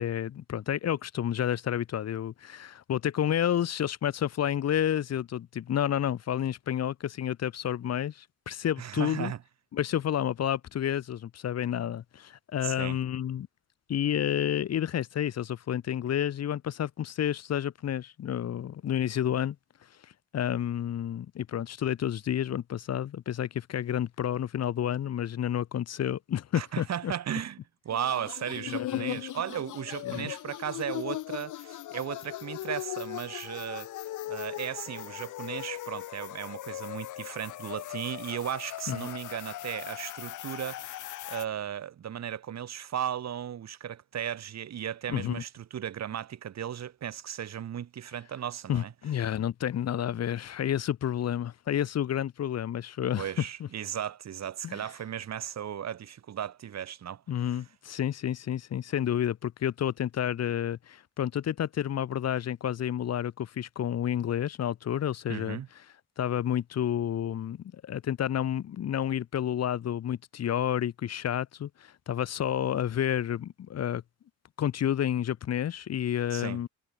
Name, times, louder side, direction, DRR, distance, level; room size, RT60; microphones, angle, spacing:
voice 1, 0.0-9.3 9.7-13.5 13.9-19.6 20.3-27.1 28.7-29.2 30.0-30.3 38.9-39.1 45.1-45.4 48.7-53.3 53.6-53.7 54.6-54.8 57.3-65.6 66.2-74.0 74.6-76.7, left 10 dB, 60° left, 1.5 m, -30 dB
voice 2, 8.8-9.4 12.6-13.0 26.5-27.6 27.8-33.9 34.2-48.9 53.2-57.2 57.5-57.6 65.3-65.7 76.3-76.6, right 9 dB, 60° right, 4.9 m, -36 dB
sound 1, 27.9-41.5, left 14 dB, 80° left, 2.0 m, -38 dB
cardioid pair, 90°, 30 cm